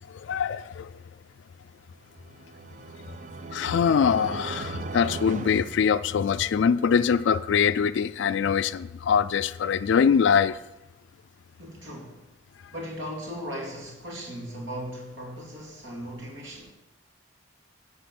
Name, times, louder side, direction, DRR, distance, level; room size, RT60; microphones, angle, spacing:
voice 1, 0.1-0.9 3.5-10.6, left 7 dB, 65° left, 0.3 m, -23 dB
sound 1, 2.0-6.6, right 3 dB, 40° right, 0.4 m, -38 dB
voice 2, 11.6-12.2 12.7-16.7, equal, 75° right, 2.6 m, -38 dB
11.5 x 4.3 x 7.7 m
head